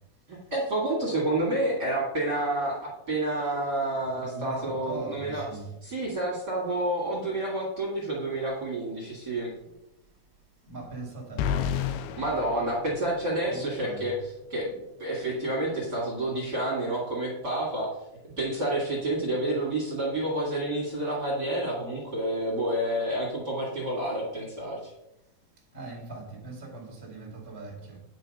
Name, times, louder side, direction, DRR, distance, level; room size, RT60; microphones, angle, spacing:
voice 1, 0.3-5.5 5.8-9.5 12.2-14.7 15.0-17.9 18.4-24.9, right 1 dB, 35° right, 1.9 m, -29 dB
voice 2, 4.1-5.6 10.6-11.5 13.5-14.0 25.7-28.0, right 3 dB, 10° right, 1.4 m, -40 dB
sound 1, 11.4-13.5, left 8 dB, 85° left, 2.5 m, -31 dB
9.2 x 5.6 x 5.4 m
omnidirectional pair, 4.4 m